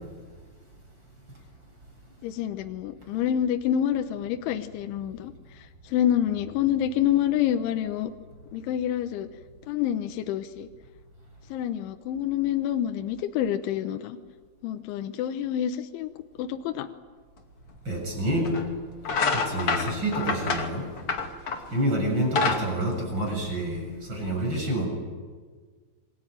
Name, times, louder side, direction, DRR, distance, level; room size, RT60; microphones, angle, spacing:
voice 1, 2.2-5.3 5.9-8.1 8.5-9.3 9.7-10.7 11.5-14.2 14.6-16.1 16.4-16.9, left 10 dB, 75° left, 7 dB, 3.3 m, -27 dB
sound 1, 17.7-17.8 18.4-18.7 19.0-21.7 22.1-23.8, left 4 dB, 40° left, 2.3 m, -27 dB
voice 2, 17.9-18.5 19.3-20.9 21.7-24.9, right 1 dB, 20° right, 2 dB, 7.5 m, -28 dB
27.5 x 23.0 x 9.1 m, 1.5 s
omnidirectional pair, 5.8 m